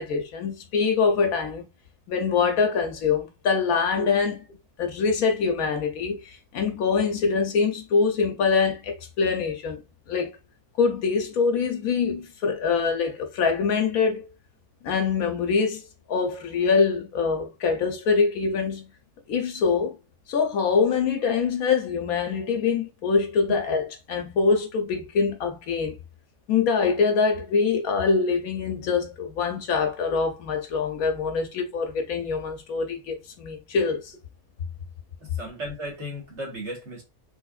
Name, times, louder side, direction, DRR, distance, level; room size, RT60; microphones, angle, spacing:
voice 1, 0.0-1.7 2.1-4.4 4.8-9.8 10.1-10.4 10.8-14.3 14.8-18.9 19.3-20.0 20.3-26.0 26.5-34.1, left 5 dB, 70° left, 1.1 m, -24 dB
voice 2, 35.4-37.0, right 1 dB, 50° right, 1.7 m, -35 dB
3.4 x 3.1 x 2.3 m
omnidirectional pair, 1.6 m